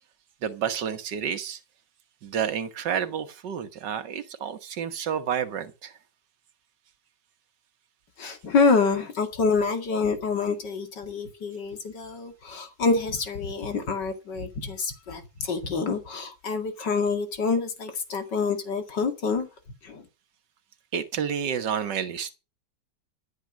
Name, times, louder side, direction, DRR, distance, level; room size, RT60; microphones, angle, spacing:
voice 1, 0.4-1.6 2.2-5.9 20.9-22.3, right 8 dB, 80° right, 1.9 m, -30 dB
voice 2, 8.2-19.5 19.8-20.0, left 4 dB, 80° left, 2.9 m, -27 dB
13.5 x 9.3 x 6.3 m
omnidirectional pair, 1.9 m